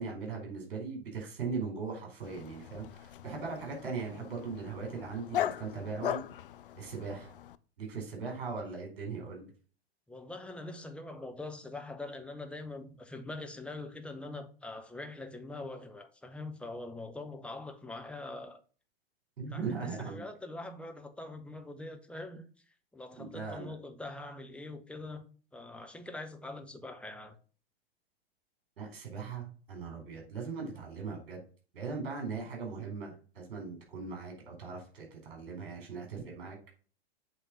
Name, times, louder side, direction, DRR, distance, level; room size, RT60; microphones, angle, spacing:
voice 1, 0.0-6.2 6.7-7.3 7.8-9.5 19.4-20.2 23.2-23.7 28.8-31.4 31.7-36.6, right 5 dB, 60° right, 4.3 m, -39 dB
Dog, 2.2-7.6, left 11 dB, 60° left, 0.5 m, -39 dB
voice 2, 10.1-18.6 19.5-22.4 22.9-25.2 25.5-27.4, left 2 dB, 5° left, 0.8 m, -43 dB
8.1 x 3.6 x 5.3 m
figure-of-eight pair, 100°, 30 cm